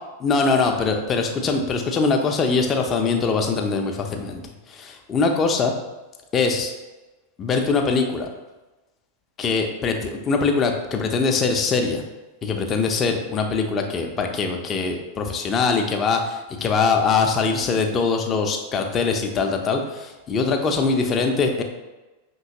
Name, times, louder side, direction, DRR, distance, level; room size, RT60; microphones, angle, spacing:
voice 1, 0.2-4.4 4.7-5.7 6.3-6.7 7.4-8.3 9.4-12.0 12.4-21.6, left 4 dB, 25° left, 4 dB, 0.5 m, -22 dB
5.6 x 3.0 x 2.8 m, 1.1 s
figure-of-eight pair, 90°, 0 cm